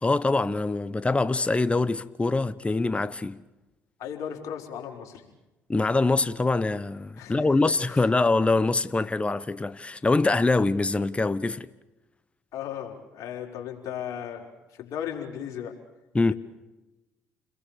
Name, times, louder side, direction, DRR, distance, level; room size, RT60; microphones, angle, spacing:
voice 1, 0.0-3.4 5.7-11.7 16.1-16.3, left 3 dB, 20° left, 1.1 m, -24 dB
voice 2, 4.0-5.2 7.2-7.7 12.5-14.5 14.8-15.7, left 9 dB, 65° left, 5.6 m, -36 dB
29.5 x 22.0 x 7.0 m
hypercardioid pair, 60°, 6 cm